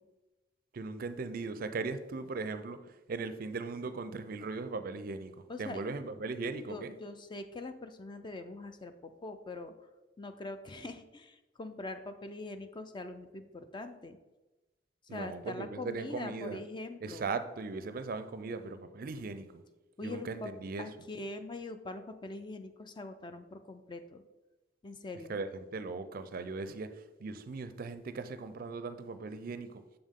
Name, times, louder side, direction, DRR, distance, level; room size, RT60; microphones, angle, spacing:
voice 1, 0.7-6.9 15.1-16.6 17.0-19.6 20.0-20.9 25.3-26.9 27.2-29.8, right 3 dB, 50° right, 11 dB, 0.4 m, -38 dB
voice 2, 5.5-5.8 6.7-9.7 10.2-14.2 15.1-17.4 20.0-20.5 20.8-24.2 24.8-25.4, left 2 dB, 25° left, 9 dB, 0.4 m, -43 dB
7.0 x 5.4 x 3.7 m, 1.1 s
head